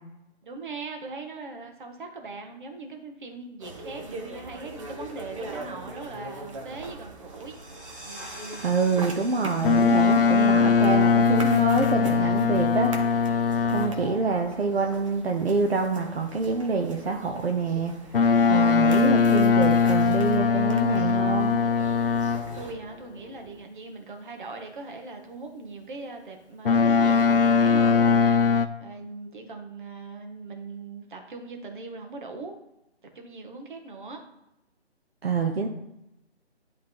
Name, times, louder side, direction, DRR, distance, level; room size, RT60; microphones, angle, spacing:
voice 1, 0.4-7.6 22.6-32.6 33.0-34.2, right 3 dB, 45° right, 4 dB, 1.4 m, -40 dB
sound 1, 3.6-22.7, right 2 dB, 30° right, 0.9 m, -42 dB
sound 2, 7.2-12.6, equal, 10° right, 1.3 m, -47 dB
voice 2, 8.6-12.9 13.6-17.9 18.5-21.6 35.2-35.7, right 4 dB, 60° right, 2 dB, 1.0 m, -26 dB
Boat Water vehicle, 9.6-14.2 18.1-22.7 26.6-28.7, left 5 dB, 55° left, 0.6 m, -21 dB
10.5 x 3.6 x 3.9 m, 0.89 s
figure-of-eight pair, 155°, 34 cm